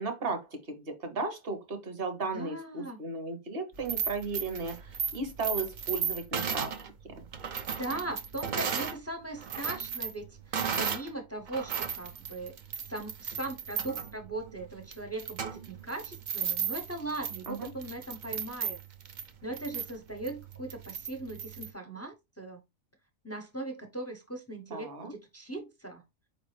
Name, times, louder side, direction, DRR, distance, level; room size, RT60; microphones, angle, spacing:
voice 1, 0.0-6.7 7.1-7.2 17.5-17.7 24.7-25.1, right 3 dB, 45° right, 1.0 m, -35 dB
voice 2, 2.3-3.0 7.8-18.8 19.4-22.6 23.2-26.0, right 2 dB, 25° left, 0.3 m, -39 dB
sound 1, 3.7-9.0 9.3-11.1 11.5-21.7, right 7 dB, 75° right, 0.4 m, -35 dB
4.7 x 3.3 x 3.1 m
omnidirectional pair, 1.5 m